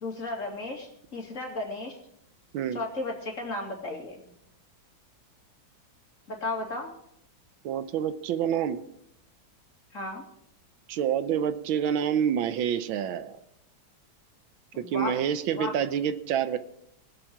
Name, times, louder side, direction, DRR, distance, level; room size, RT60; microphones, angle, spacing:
voice 1, 0.0-2.0 2.7-4.3 6.3-6.9 9.9-10.2 14.7-15.2 15.5-15.8, left 2 dB, 40° left, 1 dB, 2.6 m, -34 dB
voice 2, 7.6-8.8 10.9-13.4 14.8-16.6, right 9 dB, 90° right, 12 dB, 1.6 m, -27 dB
21.0 x 7.7 x 4.6 m, 0.75 s
omnidirectional pair, 2.1 m